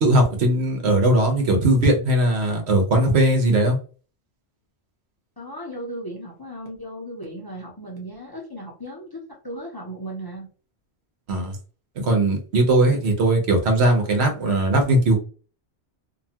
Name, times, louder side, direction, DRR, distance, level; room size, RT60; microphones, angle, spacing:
voice 1, 0.0-3.8 11.3-11.6 12.0-15.2, right 1 dB, 80° right, 3 dB, 1.1 m, -19 dB
voice 2, 5.4-10.5, right 1 dB, 25° left, -2 dB, 0.6 m, -36 dB
2.7 x 2.2 x 2.7 m, 0.37 s
omnidirectional pair, 1.1 m